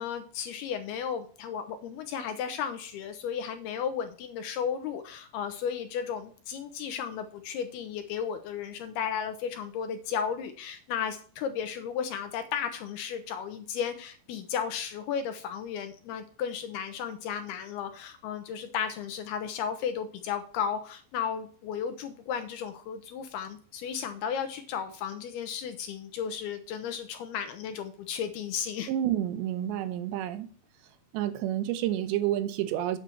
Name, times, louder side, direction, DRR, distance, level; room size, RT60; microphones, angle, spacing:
voice 1, 0.0-28.9, left 7 dB, 75° left, 2.5 m, -34 dB
voice 2, 28.9-30.5 31.1-33.0, right 12 dB, 80° right, 2.9 m, -29 dB
9.0 x 7.9 x 4.4 m
omnidirectional pair, 5.2 m